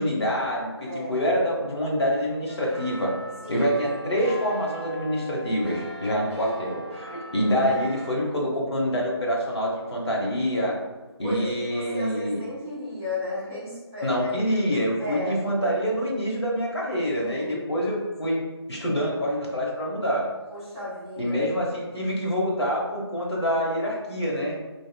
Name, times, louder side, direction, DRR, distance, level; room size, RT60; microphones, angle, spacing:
voice 1, 0.0-3.2 3.5-10.8 11.2-12.4 14.0-20.3 21.2-24.6, equal, 75° left, -3 dB, 0.9 m, -26 dB
voice 2, 0.8-1.2 3.4-3.7 6.4-6.7 11.2-14.3 15.0-15.4 17.2-17.7 20.5-21.5, left 1 dB, 5° left, -16 dB, 0.4 m, -34 dB
sound 1, 2.5-8.1, equal, 25° right, 0.7 m, -40 dB
2.9 x 2.1 x 2.3 m, 1.2 s
figure-of-eight pair, 160°, 14 cm